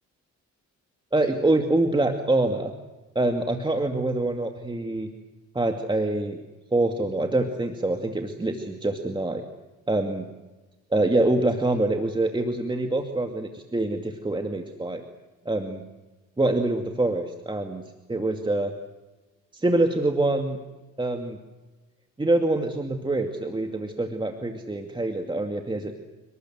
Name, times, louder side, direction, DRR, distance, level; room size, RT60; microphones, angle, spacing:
voice 1, 1.1-2.7 3.1-5.1 5.5-6.4 6.7-9.4 9.9-10.3 10.9-15.0 15.5-15.8 16.4-17.8 18.1-18.7 19.5-20.6 21.0-21.4 22.2-25.9, right 2 dB, 15° right, 4 dB, 2.3 m, -25 dB
29.5 x 19.5 x 7.8 m, 1.1 s
cardioid pair, 90°, 30 cm